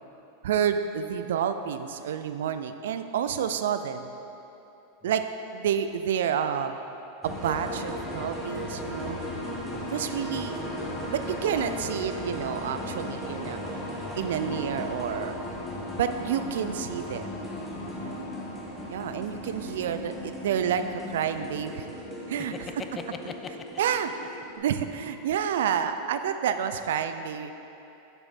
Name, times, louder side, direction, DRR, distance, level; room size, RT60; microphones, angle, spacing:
voice 1, 0.4-4.1 5.0-5.3 5.5-6.7 7.2-9.2 9.9-10.6 11.1-13.7 14.1-15.4 16.0-17.3 18.0-18.2 18.9-22.0 22.3-22.5 23.8-24.1 24.6-27.5, right 8 dB, 75° right, 9 dB, 0.4 m, -29 dB
sound 1, 7.2-24.6, left 1 dB, 5° left, 1.5 m, -36 dB
voice 2, 8.0-9.2 9.7-9.9 18.0-18.2 22.4-23.7 25.0-25.3, left 5 dB, 25° left, 7 dB, 0.5 m, -43 dB
6.8 x 5.9 x 4.2 m, 2.9 s
hypercardioid pair, 105°, 0 cm